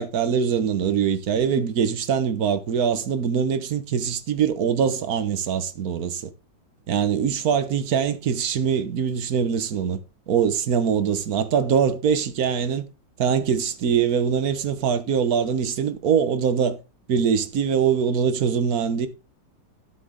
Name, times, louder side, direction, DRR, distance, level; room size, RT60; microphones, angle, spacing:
voice 1, 0.0-6.3 6.9-10.0 10.3-12.8 13.2-16.8 17.1-19.1, right 7 dB, 55° right, 1.5 m, -23 dB
12.5 x 7.8 x 3.8 m
omnidirectional pair, 2.0 m